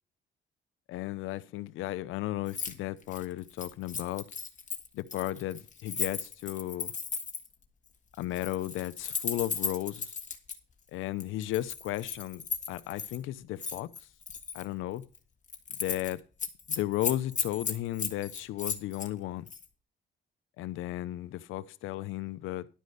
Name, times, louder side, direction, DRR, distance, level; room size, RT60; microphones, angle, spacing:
voice 1, 0.9-4.3 4.9-6.9 8.2-10.2 10.9-13.9 14.5-15.0 15.8-16.2 16.7-19.5 20.6-22.7, left 15 dB, 90° left, 0.7 m, -34 dB
Keys jangling, 2.5-2.7 3.0-7.5 8.2-10.6 11.2-13.2 13.6-14.7 15.0-15.2 15.5-16.1 16.4-19.1 19.5-19.7, left 6 dB, 40° left, 1.9 m, -36 dB
12.0 x 5.2 x 6.5 m
cardioid pair, 90°, 20 cm